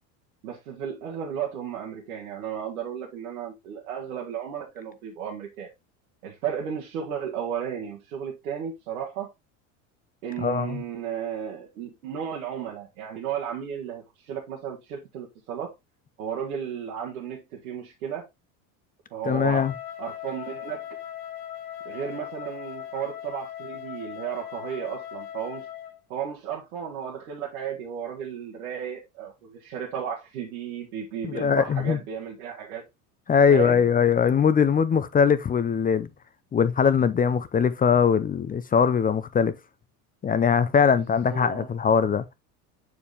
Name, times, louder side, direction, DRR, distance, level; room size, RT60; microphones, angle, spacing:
voice 1, 0.4-5.7 6.2-9.3 10.2-15.7 16.2-18.3 19.1-19.7 20.0-20.8 21.8-25.7 26.1-32.8 33.5-33.9 41.3-41.7, right 8 dB, 85° right, 1.7 m, -34 dB
voice 2, 10.4-10.8 19.3-19.7 31.2-32.0 33.3-36.1 36.5-39.6 40.2-42.2, left 6 dB, 20° left, 0.5 m, -21 dB
Wind instrument woodwind instrument, 19.6-26.0, left 11 dB, 65° left, 2.2 m, -39 dB
6.9 x 4.7 x 3.3 m
supercardioid pair, 95°, 42 cm